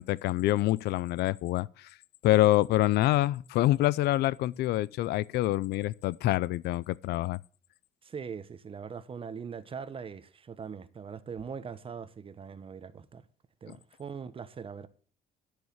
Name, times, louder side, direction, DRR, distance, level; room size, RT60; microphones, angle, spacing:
voice 1, 0.0-1.9 2.2-7.4, left 15 dB, 75° left, 0.5 m, -26 dB
voice 2, 8.0-13.2 13.6-14.9, right 6 dB, 35° right, 1.1 m, -41 dB
10.5 x 6.6 x 7.9 m
cardioid pair, 110°, 17 cm